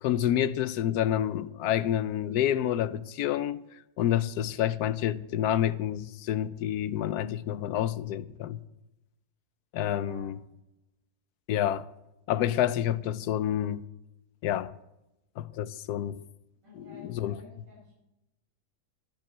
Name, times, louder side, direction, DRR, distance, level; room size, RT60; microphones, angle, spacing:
voice 1, 0.0-3.6 4.0-8.6 9.7-10.4 11.5-11.8 12.3-13.8 14.4-14.7 15.4-16.2 16.9-17.4, left 11 dB, 75° left, 1.1 m, -28 dB
voice 2, 9.9-10.4 16.6-18.0, left 2 dB, 50° right, 6.6 m, -51 dB
11.0 x 10.5 x 7.7 m
omnidirectional pair, 1.7 m